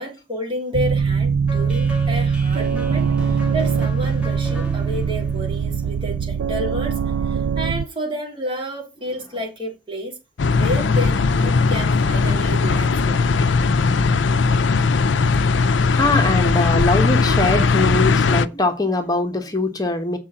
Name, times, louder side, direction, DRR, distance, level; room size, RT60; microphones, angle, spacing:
voice 1, 0.0-10.1 10.5-13.2, equal, 30° right, 3.5 m, -30 dB
sound 1, 0.7-7.8, right 6 dB, 85° right, 0.4 m, -22 dB
sound 2, 1.5-6.5, left 2 dB, 5° right, 2.2 m, -38 dB
sound 3, 10.4-18.5, left 4 dB, 85° left, 0.5 m, -18 dB
voice 2, 15.5-20.2, left 2 dB, 20° left, 1.3 m, -22 dB
7.3 x 5.0 x 6.9 m
head